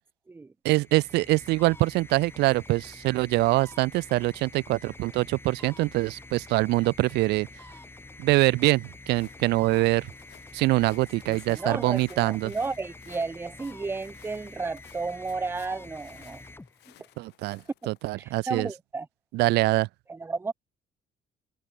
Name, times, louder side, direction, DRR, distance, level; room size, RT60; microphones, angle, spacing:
voice 1, 0.6-7.5 8.2-10.1 10.5-12.5 17.2-18.7 19.3-19.9, right 20 dB, 80° right, 0.5 m, -24 dB
sound 1, 0.7-17.3, left 2 dB, 15° left, 6.5 m, -47 dB
Walk footsteps, 9.0-18.1, left 18 dB, 85° left, 6.0 m, -57 dB
voice 2, 11.3-16.4 17.8-17.9 18.2-19.1 20.1-20.5, right 4 dB, 15° right, 0.6 m, -33 dB
cardioid pair, 110°, 17 cm